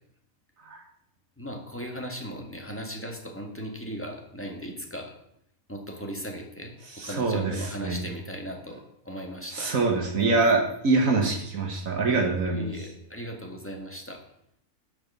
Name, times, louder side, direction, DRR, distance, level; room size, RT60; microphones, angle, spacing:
voice 1, 1.4-5.1 5.7-9.7 12.5-14.2, equal, 10° left, 2 dB, 1.7 m, -37 dB
voice 2, 7.0-8.1 9.5-12.7, right 3 dB, 75° right, 1 dB, 1.9 m, -25 dB
11.0 x 5.2 x 6.9 m, 0.75 s
omnidirectional pair, 1.4 m